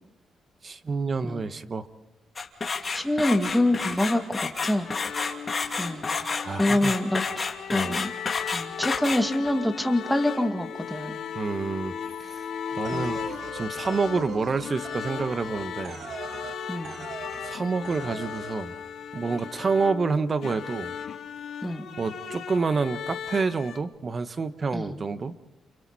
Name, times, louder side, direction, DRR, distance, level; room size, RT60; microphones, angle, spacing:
voice 1, 0.6-1.9 3.8-3.9 6.4-6.9 7.7-8.0 11.3-11.9 12.2-12.4 12.7-13.2 13.5-16.0 17.4-18.8 19.1-20.9 22.0-25.3, right 4 dB, 35° right, 12 dB, 1.2 m, -28 dB
sound 1, 2.4-9.5, left 4 dB, 30° left, 2.7 m, -30 dB
voice 2, 2.9-4.9 5.8-6.1 6.6-7.5 7.7-8.1 8.5-11.2 12.9-13.2 16.7-17.0 21.6-21.9 24.7-24.9, left 1 dB, 5° left, 4 dB, 2.4 m, -26 dB
sound 2, 4.8-23.8, left 8 dB, 70° left, 2.0 m, -37 dB
sound 3, 12.8-16.6 16.8-17.6 17.8-18.6, right 6 dB, 60° right, 1.6 m, -41 dB
30.0 x 29.0 x 4.3 m, 0.90 s
cardioid pair, 105°, 0 cm